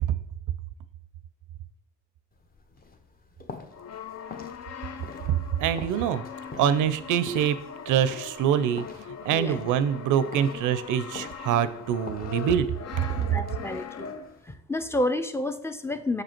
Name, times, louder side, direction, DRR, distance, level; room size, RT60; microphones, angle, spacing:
sound 1, 2.3-14.5, left 4 dB, 30° left, 0.9 m, -47 dB
Brass instrument, 3.7-14.5, left 7 dB, 60° left, 0.6 m, -40 dB
voice 1, 5.6-6.2 6.6-7.6 7.9-8.9 9.2-12.7 13.0-13.1, right 9 dB, 90° right, 14 dB, 0.6 m, -24 dB
voice 2, 13.2-14.1 14.4-16.2, left 1 dB, 10° left, 10 dB, 0.5 m, -30 dB
6.3 x 5.1 x 4.4 m, 0.78 s
cardioid pair, 90°, 30 cm